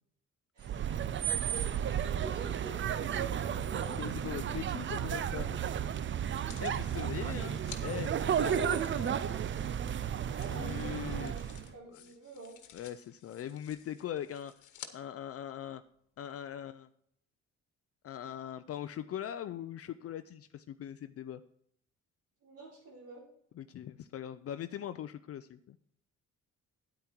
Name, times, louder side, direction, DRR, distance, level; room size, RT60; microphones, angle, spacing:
voice 1, 0.5-0.9 1.5-4.4 6.1-6.2 8.2-11.4 11.7-12.6 22.4-23.2, right 2 dB, 80° right, -9 dB, 4.9 m, -48 dB
sound 1, 0.6-11.7, right 9 dB, 40° right, 0.5 m, -33 dB
voice 2, 4.0-5.6 6.6-8.1 8.4-8.8 10.5-11.4 11.9-12.0 12.7-14.6 14.9-15.8 16.2-16.9 18.0-21.4 23.6-25.8, left 10 dB, 50° left, 11 dB, 0.5 m, -41 dB
sound 2, 6.3-7.8 8.7-14.9 15.6-15.7, left 10 dB, 80° left, 1.3 m, -53 dB
9.2 x 9.0 x 4.5 m, 0.68 s
cardioid pair, 90°, 30 cm